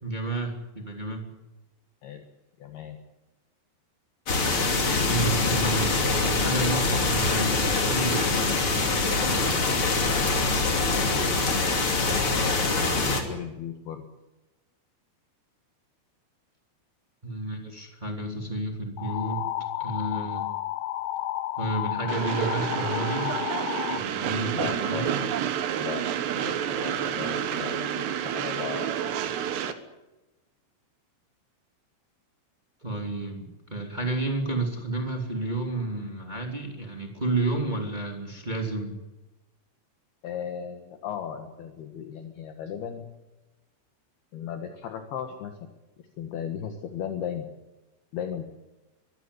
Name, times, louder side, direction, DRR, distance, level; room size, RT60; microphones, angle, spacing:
voice 1, 0.0-1.2 5.1-8.6 8.9-9.5 17.2-19.4 19.8-20.4 21.6-23.3 23.9-25.2 32.8-39.0, right 2 dB, 15° right, 2 dB, 2.1 m, -31 dB
voice 2, 2.6-3.0 9.5-10.0 13.3-14.0 24.5-25.1 25.7-26.0 26.3-29.0 40.2-43.1 44.3-45.5 46.2-47.5 48.1-48.4, left 8 dB, 65° left, 5 dB, 3.2 m, -37 dB
sound 1, 4.3-13.2, left 3 dB, 35° left, 3.0 m, -24 dB
sound 2, 19.0-24.0, left 14 dB, 80° left, 3.6 m, -32 dB
Train, 22.1-29.7, right 9 dB, 70° right, 3.3 m, -29 dB
24.0 x 15.5 x 9.9 m, 1.1 s
omnidirectional pair, 5.5 m